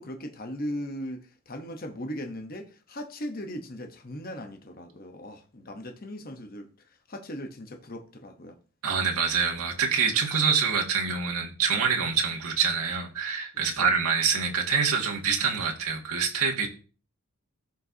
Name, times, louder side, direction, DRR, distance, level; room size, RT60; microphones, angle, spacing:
voice 1, 0.0-8.6 13.7-13.9, equal, 40° left, 1.0 m, -38 dB
voice 2, 8.8-16.7, right 6 dB, 90° right, 2.0 m, -26 dB
15.0 x 5.5 x 2.8 m
head